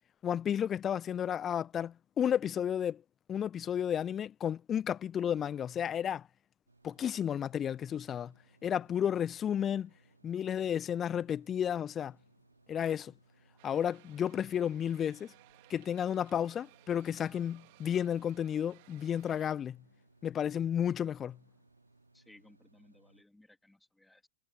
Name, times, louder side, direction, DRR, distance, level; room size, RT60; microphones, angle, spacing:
voice 1, 0.2-3.0 3.3-6.3 6.8-8.3 8.6-9.9 10.2-12.2 12.7-13.1 13.6-15.3 15.7-19.8 20.2-21.4, left 9 dB, 25° left, 0.5 m, -32 dB
sound 1, 6.7-23.2, right 2 dB, 80° right, 4.2 m, -66 dB
sound 2, 13.6-19.6, right 26 dB, 50° right, 3.8 m, -61 dB
voice 2, 22.1-24.3, left 1 dB, 5° left, 3.4 m, -61 dB
figure-of-eight pair, 90°, 0 cm